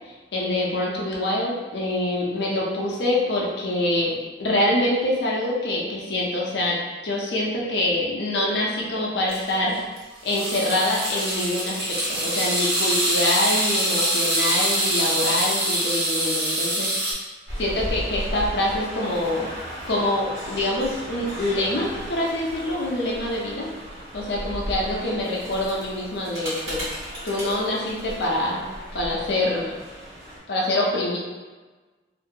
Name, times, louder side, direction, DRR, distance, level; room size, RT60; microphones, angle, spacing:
voice 1, 0.3-9.8 10.2-16.9 17.6-19.5 19.9-23.7 24.1-26.9 27.2-28.6 28.9-29.7 30.5-31.2, left 1 dB, 65° left, -3 dB, 0.6 m, -25 dB
sound 1, 9.3-9.5 9.8-10.0 10.2-17.1, right 1 dB, 65° right, 0.9 m, -24 dB
sound 2, 17.5-30.4, equal, 90° right, 1.4 m, -35 dB
2.7 x 2.5 x 2.7 m, 1.3 s
head